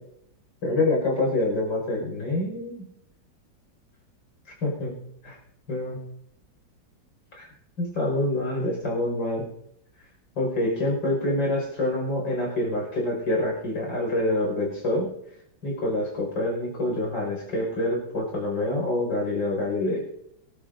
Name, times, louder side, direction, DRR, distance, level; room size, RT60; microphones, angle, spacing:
voice 1, 0.6-2.8 4.6-4.9 5.2-5.4 5.7-6.0 7.4-7.5 7.8-9.4 10.4-15.1 15.6-20.0, left 1 dB, 85° left, -2 dB, 6.0 m, -26 dB
25.5 x 12.0 x 2.7 m, 0.77 s
omnidirectional pair, 1.9 m